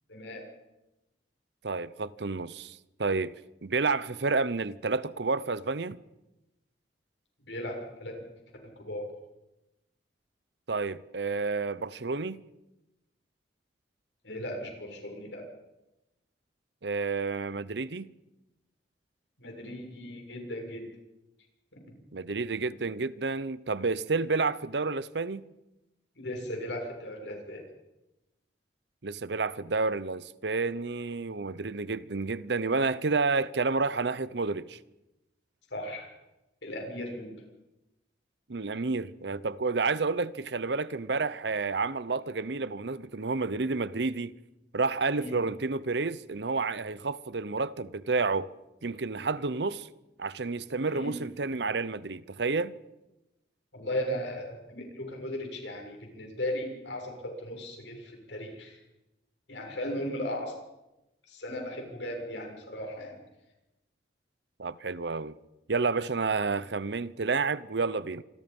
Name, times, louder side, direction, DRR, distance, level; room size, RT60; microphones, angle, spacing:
voice 1, 0.1-0.4 7.5-8.2 8.9-9.1 14.2-15.4 19.4-20.8 21.7-21.8 26.2-27.6 35.7-36.1 36.6-37.3 45.1-45.4 50.9-51.1 53.7-58.8 59.5-60.5 61.3-63.2, left 1 dB, 90° left, 6.9 m, -36 dB
voice 2, 1.6-3.3 3.6-6.0 10.7-12.4 16.8-18.1 22.1-25.5 29.0-34.8 38.5-44.3 44.7-48.5 48.8-49.9 50.2-52.7 64.6-65.4 65.7-68.2, right 4 dB, 70° right, 0.8 m, -30 dB
27.0 x 22.0 x 5.5 m
head